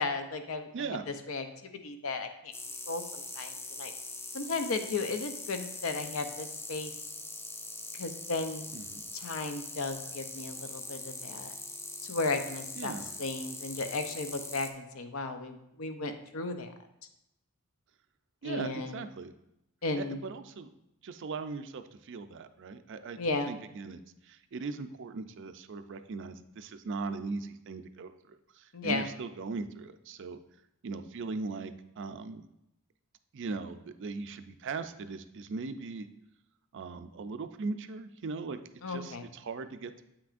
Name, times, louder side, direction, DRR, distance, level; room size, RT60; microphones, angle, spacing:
voice 1, 0.0-1.4 1.8-2.5 2.9-3.9 4.3-6.9 7.9-8.7 9.1-11.5 12.0-16.7 18.4-19.0 19.8-20.2 23.2-23.5 28.7-29.1 38.8-39.3, left 3 dB, 65° left, 7 dB, 0.6 m, -35 dB
voice 2, 0.7-1.0 8.7-9.0 12.8-13.1 18.4-19.3 20.0-20.7 21.0-23.2 23.5-30.4 30.8-32.4 33.3-36.1 36.7-38.6 38.9-40.0, right 4 dB, 55° right, 10 dB, 0.4 m, -39 dB
sound 1, 2.5-14.7, left 2 dB, 10° left, 0.4 m, -42 dB
8.4 x 5.9 x 2.5 m, 0.85 s
head